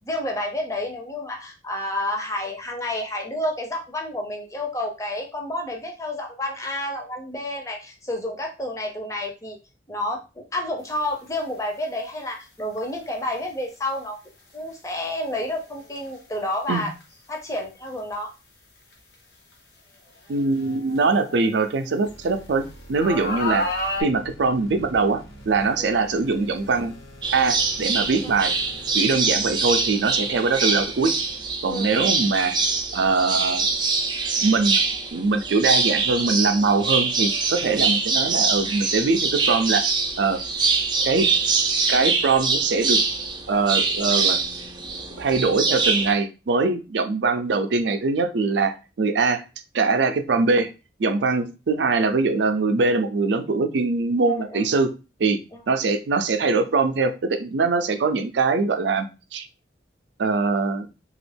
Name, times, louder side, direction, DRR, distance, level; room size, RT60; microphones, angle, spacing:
voice 1, 0.0-9.6 9.9-14.2 14.5-16.9 17.3-18.3 23.6-23.7 25.8-25.9 28.2-28.3 29.3-29.4 31.7-32.2 37.6-37.8 54.2-54.6 55.5-55.6, left 1 dB, 15° left, 1 dB, 0.6 m, -30 dB
sound 1, 11.2-11.4 12.8-12.9 15.9-16.1 17.0-17.1 18.1-18.2 18.9-19.0 20.3-22.1 22.9-24.0, left 1 dB, 60° left, 1.0 m, -30 dB
voice 2, 20.3-23.7 24.0-26.9 27.3-28.5 28.9-31.1 31.6-32.5 32.9-33.7 34.4-34.8 35.1-39.8 40.2-40.4 41.1-41.3 41.9-43.0 43.5-44.4 45.2-49.4 49.7-50.7 51.0-54.9 55.2-59.5 60.2-60.9, right 4 dB, 75° right, 8 dB, 0.5 m, -22 dB
sound 2, 22.0-31.1, equal, 90° left, 1.0 m, -45 dB
sound 3, 27.2-46.1, right 4 dB, 25° right, 0.4 m, -24 dB
2.9 x 2.4 x 3.3 m, 0.30 s
head